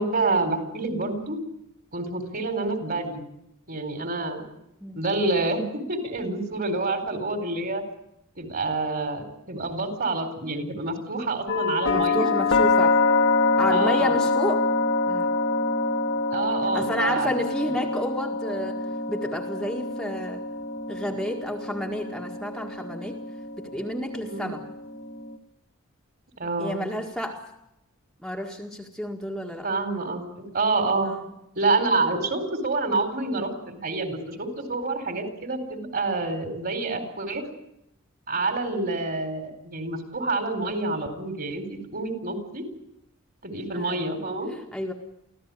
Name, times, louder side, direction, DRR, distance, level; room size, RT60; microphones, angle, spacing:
voice 1, 0.0-1.4 1.9-3.2 3.7-4.5 5.0-7.8 8.4-12.3 13.7-14.2 16.3-17.3 17.6-17.8 24.2-24.5 26.4-26.8 29.6-31.1 31.6-37.4 38.3-42.6 43.4-44.5, right 3 dB, 45° right, 7 dB, 4.3 m, -28 dB
sound 1, 11.5-25.4, left 3 dB, 65° left, 1.9 m, -25 dB
voice 2, 11.9-13.0 13.6-14.7 15.1-15.4 16.7-18.8 19.1-20.4 20.9-23.2 23.6-24.6 26.6-27.4 28.2-29.7 31.1-31.2 43.7-44.0 44.7-44.9, equal, ahead, 0 dB, 1.8 m, -31 dB
25.0 x 16.0 x 9.7 m, 0.84 s
head